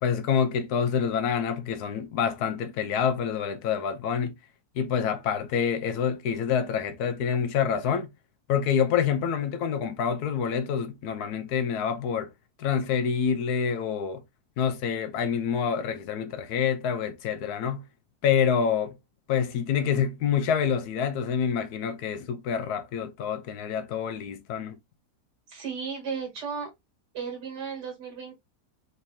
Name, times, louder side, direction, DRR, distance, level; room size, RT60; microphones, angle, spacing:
voice 1, 0.0-4.3 4.8-8.1 8.5-12.3 12.6-14.2 14.6-17.8 18.2-19.0 19.3-24.8, left 7 dB, 75° left, 1.1 m, -27 dB
voice 2, 25.5-26.7 27.1-28.4, right 6 dB, 85° right, 2.2 m, -34 dB
4.0 x 3.2 x 2.7 m
omnidirectional pair, 1.8 m